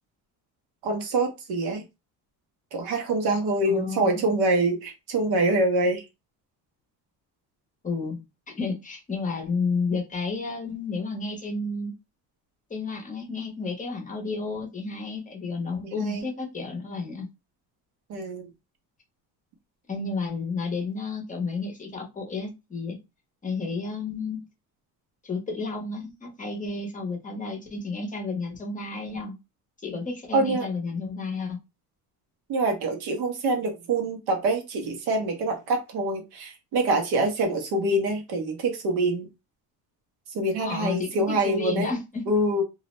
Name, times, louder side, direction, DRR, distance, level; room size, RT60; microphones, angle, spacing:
voice 1, 0.8-1.8 2.7-6.0 15.8-16.2 18.1-18.5 30.3-30.7 32.5-39.3 40.3-41.9 42.3-42.6, right 2 dB, 80° right, 2 dB, 1.0 m, -25 dB
voice 2, 3.6-4.1 7.8-8.2 8.5-11.9 12.7-17.3 19.9-23.0 23.4-24.4 25.2-29.3 29.8-31.6 40.6-42.3, left 4 dB, 20° left, 1 dB, 0.7 m, -31 dB
2.4 x 2.0 x 3.0 m, 0.24 s
cardioid pair, 150°, 37 cm